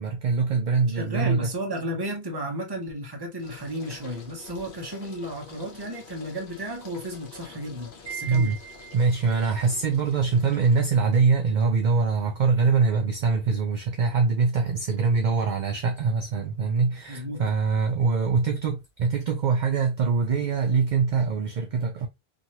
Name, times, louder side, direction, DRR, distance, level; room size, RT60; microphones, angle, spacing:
voice 1, 0.0-1.5 8.3-8.6 8.9-22.1, right 4 dB, 55° right, 0.6 m, -23 dB
voice 2, 0.9-8.5 17.1-17.4, equal, 25° right, 0.8 m, -33 dB
sound 1, 3.4-20.9, left 4 dB, 55° left, 1.0 m, -50 dB
Wind chime, 8.1-9.4, right 7 dB, 90° right, 1.0 m, -40 dB
2.9 x 2.5 x 2.8 m
omnidirectional pair, 1.1 m